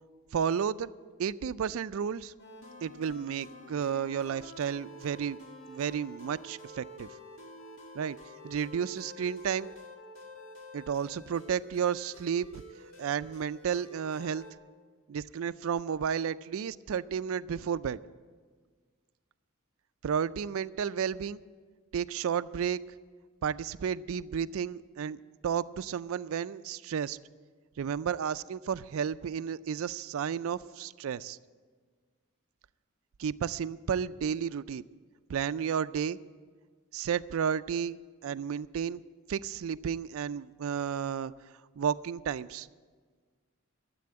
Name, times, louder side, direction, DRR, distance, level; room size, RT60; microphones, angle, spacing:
voice 1, 0.3-0.9 1.2-2.3 2.8-5.4 5.7-7.1 8.0-8.2 8.4-9.7 10.7-12.6 13.0-14.4 15.1-18.0 20.0-21.4 21.9-22.8 23.4-27.2 27.8-31.4 33.2-34.8 35.3-36.2 36.9-39.0 39.3-41.3 41.8-42.7, right 7 dB, 75° right, 15 dB, 0.4 m, -32 dB
sound 1, 2.4-14.5, equal, 60° left, 1.8 m, -49 dB
13.0 x 7.6 x 9.7 m, 1.5 s
head